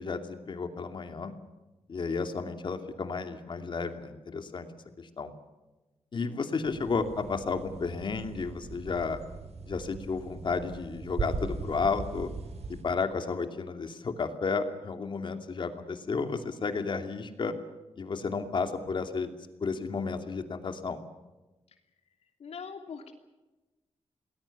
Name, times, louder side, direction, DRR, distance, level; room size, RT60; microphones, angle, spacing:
voice 1, 0.0-1.3 1.9-4.7 5.0-5.3 6.1-9.2 9.6-12.3 12.8-17.5 18.0-19.3 19.6-21.0, left 4 dB, 45° left, 7 dB, 2.6 m, -32 dB
sound 1, 6.6-12.8, right 4 dB, 80° right, 5.0 m, -39 dB
voice 2, 22.4-23.1, left 6 dB, 75° left, 5 dB, 3.0 m, -41 dB
29.0 x 20.5 x 7.2 m, 1.1 s
wide cardioid pair, 170°, 11 cm